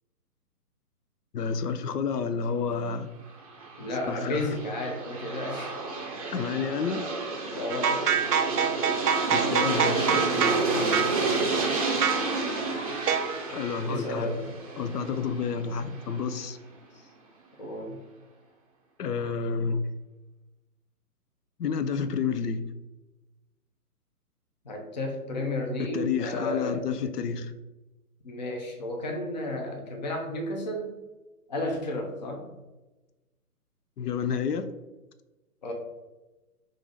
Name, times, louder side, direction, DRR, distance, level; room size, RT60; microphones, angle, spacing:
voice 1, 1.3-3.1 4.1-4.5 6.3-7.0 9.3-10.1 13.5-14.3 14.8-16.6 19.0-19.9 21.6-22.6 25.8-27.5 34.0-34.7, left 6 dB, 80° left, 11 dB, 0.5 m, -30 dB
Aircraft, 3.4-16.2, right 3 dB, 25° right, 0.5 m, -30 dB
voice 2, 3.8-5.8 7.5-8.1 11.2-11.5 13.9-14.4 16.9-17.0 17.6-18.0 24.6-27.0 28.2-30.9 31.5-32.5 35.6-35.7, left 1 dB, 30° left, 2 dB, 0.4 m, -33 dB
sound 1, 7.7-10.6 10.9-11.2 12.0-12.3 13.1-13.4, right 7 dB, 75° right, 0.6 m, -26 dB
4.7 x 2.5 x 3.9 m, 1.1 s
figure-of-eight pair, 135°, 47 cm